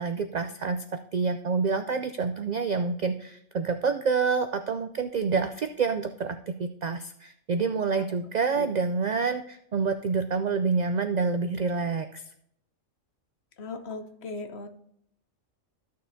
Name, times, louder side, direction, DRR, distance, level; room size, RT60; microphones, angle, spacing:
voice 1, 0.0-12.2, right 5 dB, 85° right, 8 dB, 0.3 m, -28 dB
voice 2, 13.6-14.7, left 3 dB, 60° left, 7 dB, 1.1 m, -37 dB
13.5 x 6.6 x 2.7 m, 0.72 s
omnidirectional pair, 1.3 m